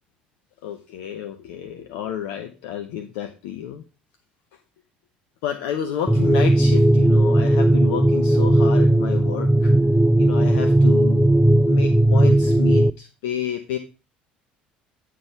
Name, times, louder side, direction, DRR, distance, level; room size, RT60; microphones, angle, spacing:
voice 1, 0.6-3.8 5.4-9.7 10.2-11.3 11.6-13.8, left 9 dB, 60° left, 6 dB, 0.7 m, -30 dB
sound 1, 6.1-12.9, right 1 dB, ahead, 0.3 m, -16 dB
9.3 x 6.1 x 3.4 m, 0.33 s
figure-of-eight pair, 60°, 5 cm